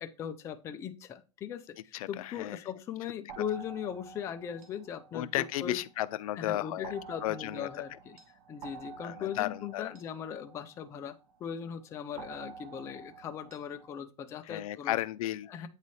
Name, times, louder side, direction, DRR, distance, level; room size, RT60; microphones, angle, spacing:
voice 1, 0.0-5.8 6.4-8.2 8.5-11.1 11.4-15.0 15.5-15.7, left 8 dB, 15° left, 0.3 m, -39 dB
voice 2, 1.9-2.6 3.4-3.5 5.1-6.9 7.2-7.7 9.0-9.9 14.5-15.7, left 15 dB, 80° left, 0.4 m, -34 dB
sound 1, 3.3-6.1 6.8-11.4 12.2-14.0, right 6 dB, 80° right, 1.1 m, -49 dB
8.3 x 3.2 x 4.0 m
supercardioid pair, 160°, 18 cm